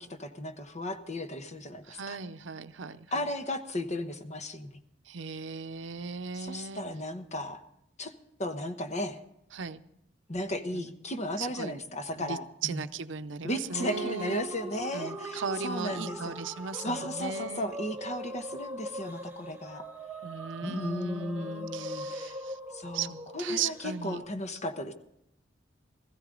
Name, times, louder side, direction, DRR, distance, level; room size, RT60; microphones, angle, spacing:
voice 1, 0.0-2.2 3.1-4.7 6.4-7.6 8.0-8.1 8.4-9.2 10.3-12.8 13.4-16.3 16.7-19.8 20.6-22.3 22.7-24.9, left 1 dB, 40° left, 7 dB, 1.1 m, -35 dB
voice 2, 1.8-3.3 5.0-6.8 9.5-9.8 10.7-10.9 11.4-11.8 12.1-14.5 14.9-17.7 20.2-22.6 22.9-24.2, right 6 dB, 90° right, 12 dB, 0.6 m, -37 dB
sound 1, 13.7-24.2, right 1 dB, 10° right, 1.0 m, -40 dB
17.0 x 15.0 x 3.9 m, 0.80 s
head